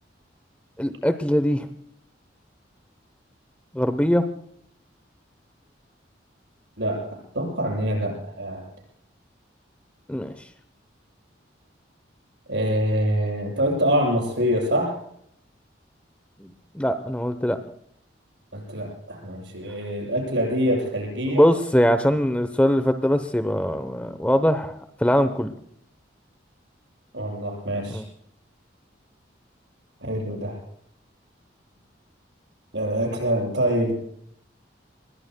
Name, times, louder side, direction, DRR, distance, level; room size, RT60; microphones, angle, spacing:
voice 1, 0.8-1.7 3.7-4.2 10.1-10.3 16.4-16.5 16.7-17.6 21.3-25.5 27.9-28.1, equal, 5° left, 10 dB, 0.8 m, -22 dB
voice 2, 6.8-8.6 12.5-15.0 18.5-21.4 27.1-28.0 30.0-30.6 32.7-33.9, equal, 70° right, -1 dB, 7.9 m, -25 dB
26.5 x 21.0 x 2.2 m, 0.70 s
head